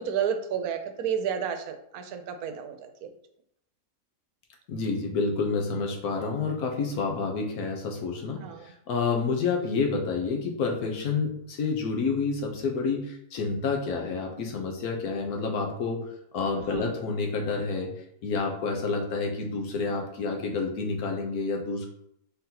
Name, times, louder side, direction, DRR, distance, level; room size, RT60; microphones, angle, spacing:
voice 1, 0.0-3.1 8.4-8.7 16.7-16.9, right 8 dB, 85° right, 7 dB, 1.1 m, -31 dB
voice 2, 4.7-17.9 18.2-21.9, left 4 dB, 85° left, 2 dB, 1.3 m, -29 dB
4.1 x 3.8 x 2.8 m, 0.72 s
omnidirectional pair, 1.5 m